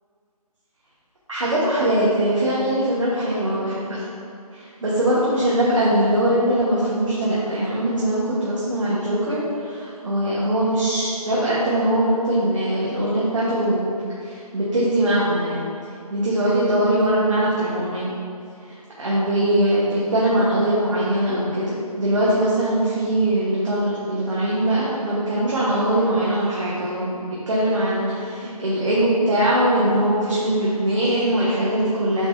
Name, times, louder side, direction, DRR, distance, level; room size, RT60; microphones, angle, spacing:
voice 1, 1.3-4.0 4.5-13.9 14.2-15.7 16.1-18.1 18.6-27.2 27.5-32.3, right 1 dB, 55° right, -8 dB, 1.4 m, -21 dB
7.7 x 5.9 x 2.7 m, 2.5 s
hypercardioid pair, 180°, 20 cm